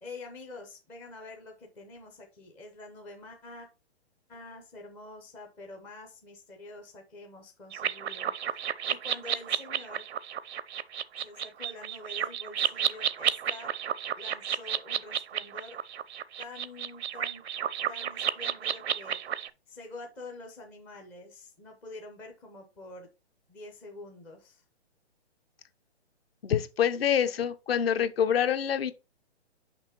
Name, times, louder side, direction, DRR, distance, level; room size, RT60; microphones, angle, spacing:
voice 1, 0.0-3.7 4.3-10.0 11.2-13.7 14.2-15.8 16.4-17.4 17.9-19.4 19.7-23.1 23.5-24.6, left 2 dB, 5° left, 0.4 m, -46 dB
sound 1, 7.7-19.5, right 9 dB, 75° right, 0.6 m, -32 dB
voice 2, 26.4-28.9, left 9 dB, 65° left, 0.9 m, -26 dB
5.8 x 5.5 x 4.3 m
hypercardioid pair, 135°, 33 cm